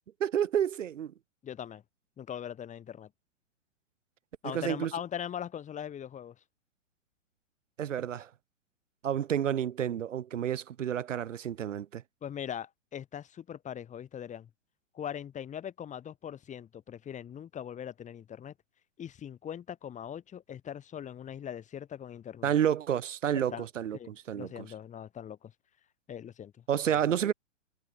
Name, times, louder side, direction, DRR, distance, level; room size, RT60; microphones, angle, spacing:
voice 1, 0.2-1.1 4.4-4.9 7.8-8.3 9.0-12.0 22.4-24.5 26.7-27.3, right 9 dB, 85° right, 0.8 m, -30 dB
voice 2, 1.4-1.8 2.2-3.1 4.4-6.3 12.2-14.5 14.9-18.5 19.0-22.5 23.3-23.6 23.9-25.5 26.1-26.5, left 9 dB, 20° left, 3.2 m, -41 dB
hypercardioid pair, 120°, 37 cm